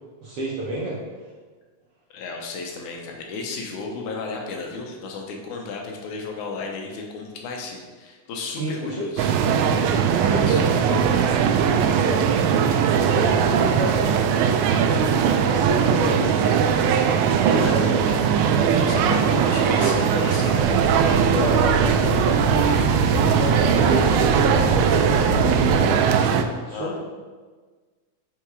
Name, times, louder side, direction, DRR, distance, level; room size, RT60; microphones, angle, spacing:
voice 1, 0.2-1.0 8.5-9.4 10.1-11.0 11.9-14.3 14.8-16.9 17.4-18.0 21.2-26.0 26.7-27.0, right 1 dB, 65° right, -4 dB, 1.6 m, -29 dB
voice 2, 2.1-9.3 10.4-11.5 17.6-18.2 18.8-20.8 26.7-26.9, left 4 dB, 75° left, 1 dB, 2.3 m, -33 dB
sound 1, 9.2-26.4, right 7 dB, 80° right, 1.9 m, -20 dB
sound 2, 20.6-25.8, right 1 dB, 30° left, 2.6 m, -26 dB
6.9 x 4.7 x 4.7 m, 1.4 s
omnidirectional pair, 3.6 m